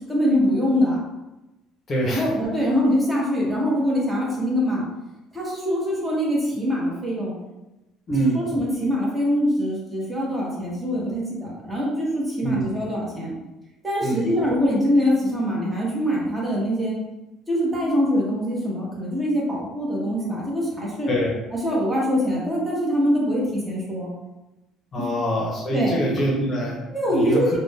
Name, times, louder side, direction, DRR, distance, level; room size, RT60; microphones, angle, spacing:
voice 1, 0.1-1.0 2.1-4.9 5.3-7.3 8.3-13.3 13.8-16.9 17.5-21.1 21.5-24.1 25.0-25.1 25.7-25.9 26.9-27.6, equal, 15° right, -5 dB, 0.9 m, -23 dB
voice 2, 1.9-2.2 8.1-8.4 12.4-12.5 14.0-14.2 21.1-21.3 24.9-27.6, right 1 dB, 35° left, -3 dB, 0.7 m, -24 dB
2.5 x 2.2 x 3.3 m, 1.0 s
cardioid pair, 105°, 0 cm